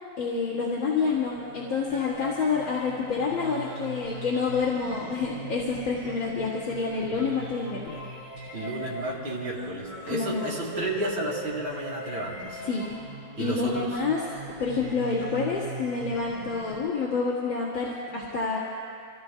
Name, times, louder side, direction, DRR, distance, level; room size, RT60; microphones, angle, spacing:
voice 1, 0.2-8.0 8.4-8.6 10.1-10.4 12.6-12.9 13.4-14.2 14.6-18.6, left 4 dB, 75° left, -7 dB, 2.5 m, -28 dB
sound 1, 1.0-16.9, right 1 dB, 20° right, 4.3 m, -40 dB
voice 2, 8.5-12.6 13.4-13.9, right 1 dB, 85° right, -3 dB, 3.2 m, -32 dB
28.5 x 16.5 x 2.3 m, 2.4 s
omnidirectional pair, 2.1 m